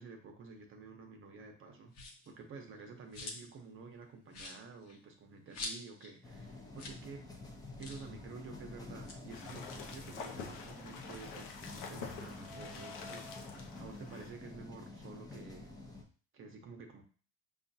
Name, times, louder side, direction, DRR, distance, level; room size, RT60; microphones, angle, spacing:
voice 1, 0.0-1.9 2.3-7.2 7.8-15.7 16.3-17.0, right 4 dB, 40° right, 3 dB, 0.8 m, -51 dB
sound 1, 1.9-2.3 2.8-3.6 3.9-4.0 4.3-6.1 6.4-6.5 6.7-7.0 7.3-7.4 7.8-8.1 8.9-10.6 11.0-12.5, left 2 dB, 55° left, 1.0 m, -47 dB
sound 2, 6.2-16.0, left 2 dB, 10° left, 0.7 m, -49 dB
sound 3, 9.3-14.3, left 5 dB, 80° left, 0.8 m, -47 dB
5.5 x 2.4 x 2.7 m, 0.40 s
cardioid pair, 120°, 31 cm